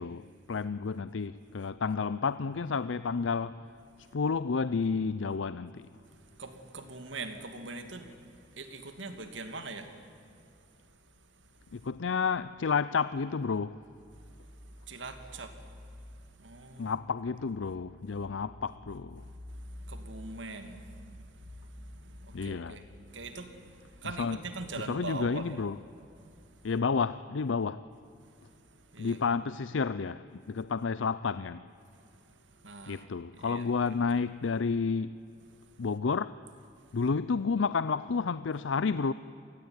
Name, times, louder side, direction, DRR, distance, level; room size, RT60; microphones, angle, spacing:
voice 1, 0.0-3.6 4.1-5.9 11.7-13.8 16.8-19.2 22.3-22.8 24.2-24.4 24.8-25.8 26.6-27.8 29.0-31.6 32.9-35.2 35.8-36.4 36.9-39.1, left 5 dB, 80° left, 0.5 m, -31 dB
voice 2, 6.4-9.9 14.9-15.5 16.4-16.9 19.9-21.2 21.6-25.6 28.9-29.2 32.6-33.1 33.3-34.0, right 3 dB, 70° right, 2.6 m, -42 dB
27.5 x 19.5 x 9.7 m
head